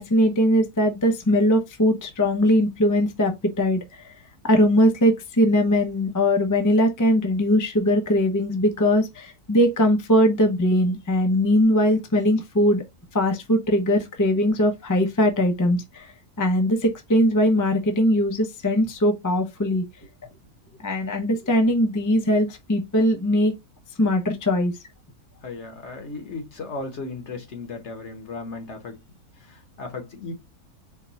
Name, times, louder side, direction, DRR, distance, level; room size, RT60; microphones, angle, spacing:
voice 1, 0.0-4.1 4.4-12.8 13.1-16.1 16.4-19.8 20.8-23.5 24.0-24.7, equal, 20° left, 0.5 m, -20 dB
voice 2, 25.4-29.0 29.4-30.3, left 3 dB, 50° left, 1.2 m, -36 dB
4.5 x 2.3 x 4.0 m
omnidirectional pair, 1.6 m